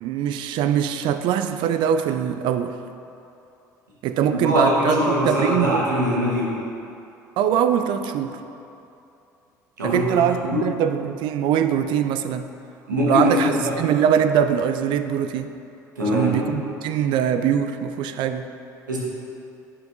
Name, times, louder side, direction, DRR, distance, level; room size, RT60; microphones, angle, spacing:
voice 1, 0.0-2.8 4.0-5.8 7.4-8.4 9.8-12.5 13.1-15.5 16.1-18.5, right 9 dB, 55° right, 9 dB, 0.4 m, -22 dB
voice 2, 4.3-6.6 9.8-10.7 12.9-13.8 16.0-16.4 18.9-19.0, equal, 85° right, -5 dB, 1.1 m, -22 dB
9.6 x 5.3 x 2.5 m, 2.7 s
hypercardioid pair, 60°, 10 cm